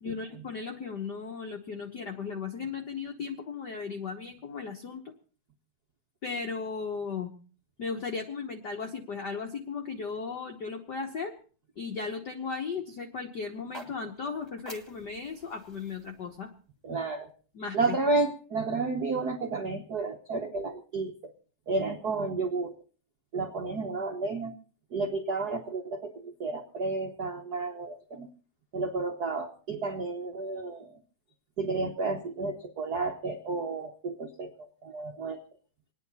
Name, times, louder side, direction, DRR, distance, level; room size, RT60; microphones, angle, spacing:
voice 1, 0.0-5.0 6.2-7.3 7.8-11.3 11.8-16.5 17.5-18.0, left 5 dB, 70° left, 3 dB, 1.0 m, -36 dB
sound 1, 13.5-17.7, equal, 10° left, 1.2 m, -50 dB
voice 2, 16.8-17.3 17.7-21.3 21.7-22.7 23.3-24.5 24.9-28.3 28.7-31.0 31.6-35.4, right 3 dB, 80° right, 2 dB, 0.8 m, -31 dB
26.5 x 9.8 x 4.1 m, 0.41 s
omnidirectional pair, 3.7 m